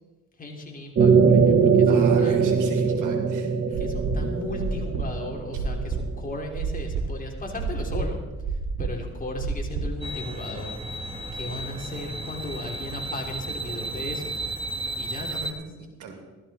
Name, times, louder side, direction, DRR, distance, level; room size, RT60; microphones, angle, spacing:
voice 1, 0.4-2.6 3.8-8.2 8.5-10.8 11.3-14.4 15.0-15.6, left 2 dB, 30° left, 0 dB, 3.3 m, -36 dB
sound 1, 1.0-6.0, right 5 dB, 40° right, 1.6 m, -21 dB
voice 2, 1.9-3.8 15.3-16.2, right 5 dB, 85° right, 3 dB, 2.6 m, -41 dB
sound 2, 3.7-10.0, right 4 dB, 70° right, 2.9 m, -30 dB
sound 3, 10.0-15.5, right 2 dB, 20° right, 1.6 m, -33 dB
15.0 x 13.0 x 4.3 m, 1.2 s
cardioid pair, 90°, 30 cm